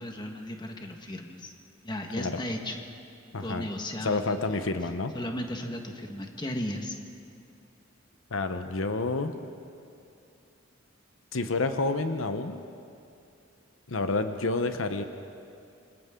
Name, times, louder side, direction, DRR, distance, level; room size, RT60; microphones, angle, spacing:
voice 1, 0.0-1.5 1.8-2.8 3.4-4.6 5.1-7.0, left 1 dB, 20° left, 3 dB, 1.6 m, -35 dB
voice 2, 3.3-3.7 4.0-5.2 8.3-9.4 11.3-12.6 13.9-15.0, left 3 dB, 85° left, 8 dB, 1.0 m, -29 dB
28.0 x 25.0 x 3.8 m, 2.6 s
head